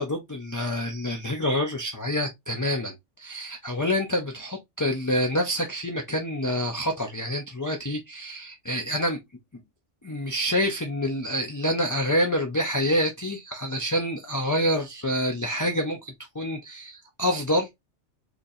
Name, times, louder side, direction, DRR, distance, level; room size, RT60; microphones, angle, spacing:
voice 1, 0.0-9.2 10.0-17.7, equal, 25° left, 0.4 m, -27 dB
4.0 x 2.9 x 2.6 m
omnidirectional pair, 1.3 m